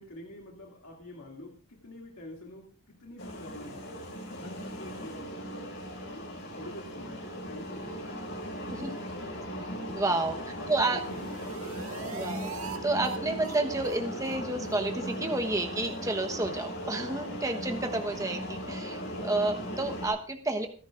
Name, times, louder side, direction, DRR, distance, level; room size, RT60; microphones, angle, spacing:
voice 1, 0.0-4.0 4.4-5.6 6.1-8.1 10.3-11.4, left 1 dB, 90° left, -1 dB, 2.4 m, -46 dB
sound 1, 3.2-20.1, equal, 55° left, 5.2 m, -38 dB
voice 2, 9.9-10.4 10.7-11.0 12.1-20.7, right 2 dB, 15° right, 5 dB, 1.1 m, -30 dB
sound 2, 10.7-12.8 13.0-13.2 13.4-13.6 13.8-14.0 14.2-14.4 14.6-14.8 15.0-15.2 15.4-15.6 15.9-16.0, right 5 dB, 80° right, 1.9 m, -43 dB
29.0 x 10.5 x 2.5 m, 0.41 s
head